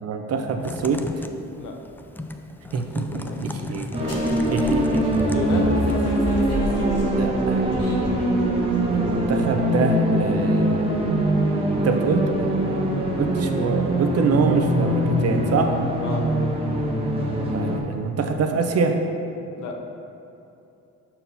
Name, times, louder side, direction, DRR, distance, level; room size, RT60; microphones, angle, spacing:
voice 1, 0.0-1.2 2.7-3.9 4.5-5.0 7.1-7.7 8.9-11.3 11.7-12.9 13.2-15.8 17.5-19.0, right 4 dB, 55° right, 5 dB, 0.7 m, -25 dB
Typing, 0.6-6.0, left 2 dB, 5° left, 0.3 m, -35 dB
voice 2, 2.7-3.7 4.0-4.5 5.2-5.8 16.0-16.3 19.6-19.8, left 4 dB, 75° left, 2 dB, 0.9 m, -33 dB
sound 1, 3.9-17.8, right 1 dB, 20° right, 1.1 m, -23 dB
sound 2, 4.0-9.6, equal, 55° left, 1.5 m, -30 dB
5.8 x 4.4 x 5.4 m, 2.8 s
cardioid pair, 90°, 30 cm